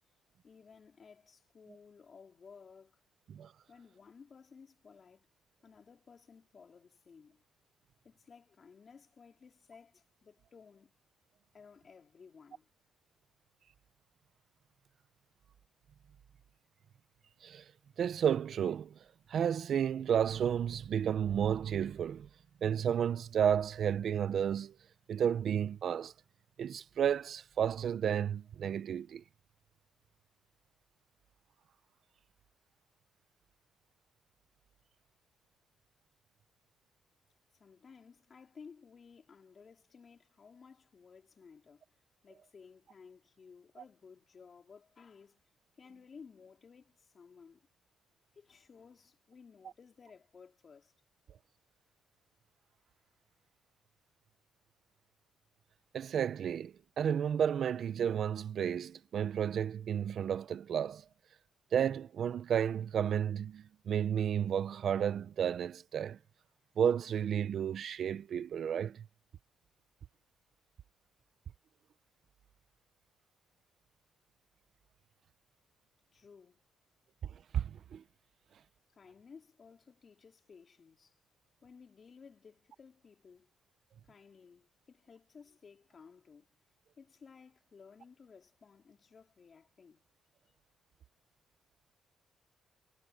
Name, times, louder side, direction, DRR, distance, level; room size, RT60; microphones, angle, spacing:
voice 1, 0.4-3.0 3.7-5.3 5.6-7.4 8.0-11.0 11.5-12.7 37.6-41.8 42.2-45.4 45.8-47.7 48.3-50.9 76.1-76.6 78.9-81.2 81.6-83.5 84.0-86.5 87.0-90.0, left 5 dB, 45° left, 4.4 m, -57 dB
voice 2, 18.0-19.0 19.3-22.3 22.6-24.7 25.1-26.1 26.6-29.2 55.9-61.0 61.7-66.2 66.8-69.0 77.5-78.0, right 8 dB, 60° right, 1.0 m, -32 dB
cardioid pair, 90°, 0 cm